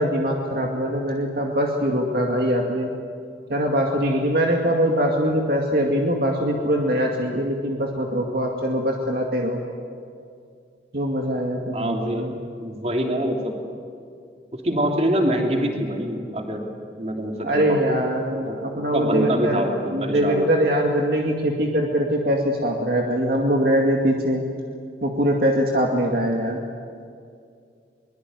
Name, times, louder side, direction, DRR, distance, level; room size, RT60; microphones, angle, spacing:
voice 1, 0.0-2.9 3.5-9.6 10.9-12.4 17.4-19.6 19.9-24.4 25.0-26.6, equal, 55° right, 0 dB, 2.3 m, -22 dB
voice 2, 11.7-12.3 12.6-13.5 14.5-16.6 17.0-18.0 18.4-20.5, right 1 dB, 35° right, 1 dB, 3.3 m, -25 dB
23.0 x 22.0 x 9.6 m, 2.3 s
head